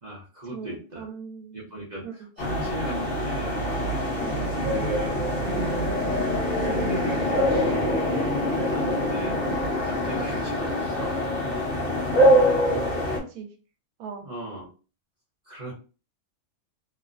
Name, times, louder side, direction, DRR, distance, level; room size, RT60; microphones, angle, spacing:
voice 1, 0.0-1.1 1.5-3.6 4.6-5.9 6.6-8.1 8.7-9.4 9.8-11.2 14.2-14.7 15.4-15.7, right 1 dB, 40° right, -5 dB, 0.7 m, -36 dB
voice 2, 0.5-1.6 2.0-2.3 4.2-4.5 13.0-13.5 14.0-14.3, right 6 dB, 85° right, 6 dB, 1.1 m, -39 dB
sound 1, 2.4-13.2, equal, 45° left, 1.0 m, -24 dB
2.9 x 2.1 x 2.4 m, 0.35 s
omnidirectional pair, 1.5 m